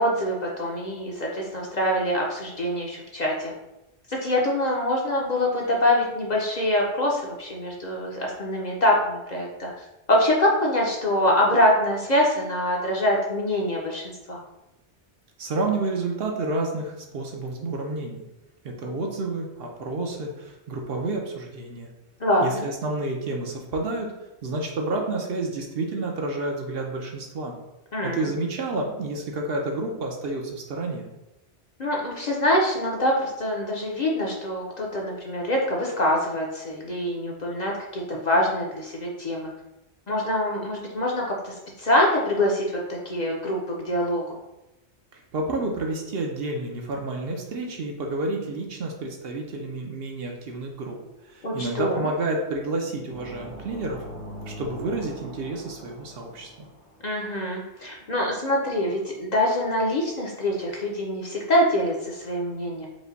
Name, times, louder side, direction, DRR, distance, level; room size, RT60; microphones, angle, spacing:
voice 1, 0.0-3.5 4.1-9.7 10.1-14.4 22.2-22.6 27.9-28.3 31.8-39.5 40.1-44.4 51.4-52.1 57.0-62.9, left 1 dB, 45° left, -2 dB, 0.7 m, -24 dB
voice 2, 15.4-18.2 18.6-21.9 22.4-24.1 24.4-27.5 28.0-31.1 45.1-51.0 51.3-54.0 54.4-56.7, right 2 dB, 60° right, 1 dB, 0.8 m, -30 dB
sound 1, 53.1-56.9, equal, 90° right, 1.6 m, -41 dB
4.9 x 2.2 x 3.9 m, 0.94 s
omnidirectional pair, 1.2 m